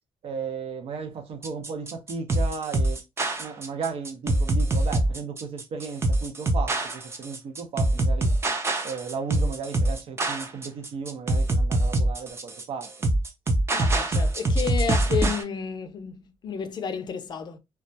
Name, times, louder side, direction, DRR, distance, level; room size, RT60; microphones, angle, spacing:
voice 1, 0.2-3.0 3.4-8.3 8.8-12.9, right 5 dB, 70° right, 0.7 m, -35 dB
sound 1, 1.4-15.4, right 1 dB, 25° right, 0.5 m, -24 dB
voice 2, 13.7-17.6, left 6 dB, 45° left, 0.4 m, -31 dB
2.3 x 2.1 x 2.6 m
cardioid pair, 130°, 10 cm